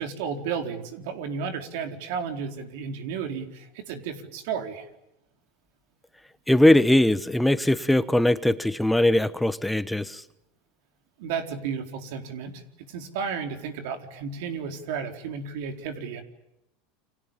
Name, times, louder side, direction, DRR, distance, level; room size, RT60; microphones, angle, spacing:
voice 1, 0.0-4.9 11.2-16.2, right 6 dB, 70° right, 6 dB, 4.3 m, -33 dB
voice 2, 6.5-10.2, left 1 dB, 5° left, 13 dB, 1.2 m, -20 dB
30.0 x 25.5 x 7.4 m, 0.88 s
supercardioid pair, 105°, 0 cm